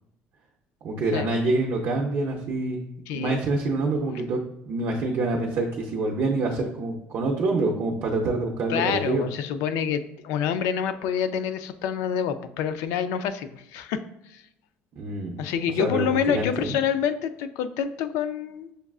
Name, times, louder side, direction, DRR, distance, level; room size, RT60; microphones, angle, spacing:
voice 1, 0.8-2.8 3.1-9.3 14.9-15.4 15.8-16.8, right 2 dB, 50° right, 0 dB, 0.5 m, -26 dB
voice 2, 3.1-3.4 8.7-14.4 15.4-18.7, left 8 dB, 90° left, 11 dB, 0.3 m, -27 dB
6.4 x 2.4 x 2.3 m, 0.83 s
cardioid pair, 140°, 5 cm